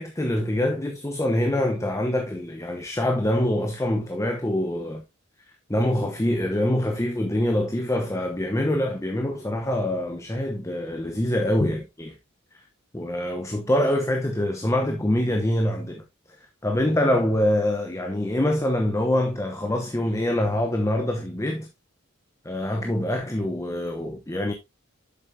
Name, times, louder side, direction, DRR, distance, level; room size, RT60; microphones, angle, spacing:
voice 1, 0.0-5.0 5.7-12.2 12.9-16.0 16.6-21.7 22.4-24.5, left 1 dB, 15° left, 0.8 m, -25 dB
7.6 x 7.1 x 2.7 m
head